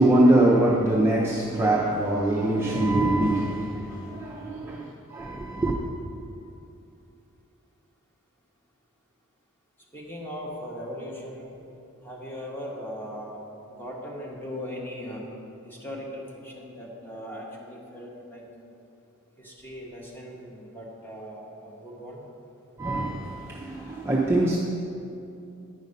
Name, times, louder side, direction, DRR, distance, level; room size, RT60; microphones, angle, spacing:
voice 1, 0.0-5.7 22.8-24.6, right 1 dB, 10° right, 0.5 m, -23 dB
voice 2, 4.4-4.9 9.9-11.5 12.0-13.4 13.7-15.2 15.6-18.4 19.4-22.2, equal, 10° left, 1.4 m, -39 dB
9.9 x 5.2 x 5.3 m
head